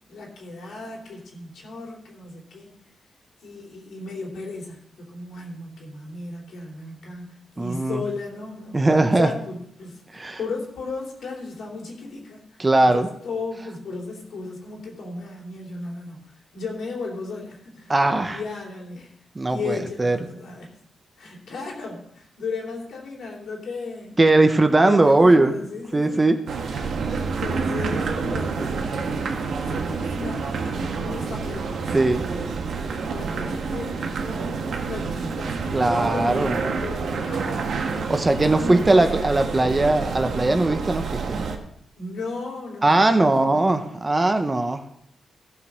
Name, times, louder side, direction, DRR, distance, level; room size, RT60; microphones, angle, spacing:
voice 1, 0.1-2.8 3.4-8.8 9.2-17.9 18.2-19.1 19.5-20.7 21.2-24.2 24.8-26.3 27.1-31.9 32.6-38.0 38.6-39.4 41.9-44.0, left 3 dB, 75° left, -1 dB, 3.3 m, -35 dB
voice 2, 7.6-8.0 8.7-9.3 10.1-10.4 12.6-13.1 17.9-18.4 19.3-20.2 24.2-25.5 25.9-26.4 31.9-32.2 35.7-36.6 38.1-41.5 42.8-44.8, right 2 dB, 20° right, 8 dB, 0.8 m, -19 dB
sound 1, 26.5-41.6, right 5 dB, 70° right, 1.4 m, -28 dB
15.5 x 5.3 x 6.3 m, 0.73 s
wide cardioid pair, 145°, 0 cm